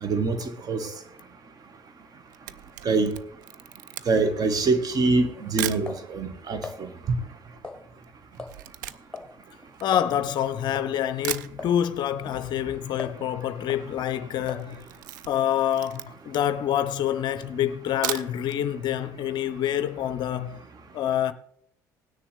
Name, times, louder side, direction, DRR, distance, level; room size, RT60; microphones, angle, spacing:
voice 1, 0.0-0.9 2.8-3.1 4.1-6.9, right 3 dB, 35° right, 1.4 m, -24 dB
Camera, 2.1-5.9 6.6-6.7 6.9-10.6 10.9-11.0 11.2-12.1 12.4-12.5 12.8-12.9 13.0-13.5 13.8-14.0 14.4-16.4 16.9-17.0 17.8-18.6 19.0-19.1 19.4-19.5, right 14 dB, 70° right, 0.4 m, -37 dB
sound 1, 4.6-6.8 7.6-8.1 8.4-8.6 8.9-9.3 9.6-9.7 9.9-10.1 10.7-11.0 11.6-11.8 12.2-13.3 13.7-13.9 14.5-14.7, left 4 dB, 10° left, 1.5 m, -40 dB
voice 2, 9.8-14.8 15.3-20.6 20.9-21.3, left 10 dB, 45° left, 0.6 m, -27 dB
17.5 x 9.8 x 3.4 m
figure-of-eight pair, 60°, 10 cm